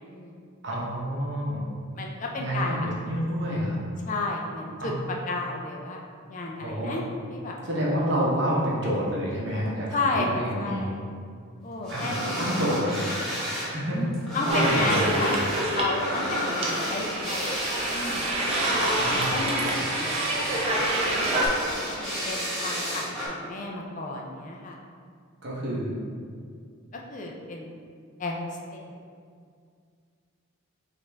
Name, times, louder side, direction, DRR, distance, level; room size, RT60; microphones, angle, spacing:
voice 1, 0.0-0.4 1.9-2.9 4.1-4.9 5.3-6.0 6.3-7.6 9.9-11.0 11.6-12.4 13.9-15.3 15.7-17.6 17.9-18.4 19.1-20.6 21.0-21.3 21.9-24.8 26.9-27.8 28.2-29.0, left 2 dB, 35° left, 0 dB, 0.4 m, -32 dB
voice 2, 0.6-1.6 2.4-2.8 3.0-3.8 4.8-4.9 6.5-7.0 7.6-10.9 11.9-13.1 13.6-14.0 14.4-15.3 18.9-19.3 25.4-26.0, equal, 55° right, -5 dB, 0.9 m, -28 dB
sound 1, 11.8-13.7 14.0-23.3, equal, ahead, 1.1 m, -31 dB
sound 2, 14.5-21.5, right 1 dB, 30° right, 0.6 m, -27 dB
5.1 x 2.5 x 3.3 m, 2.2 s
head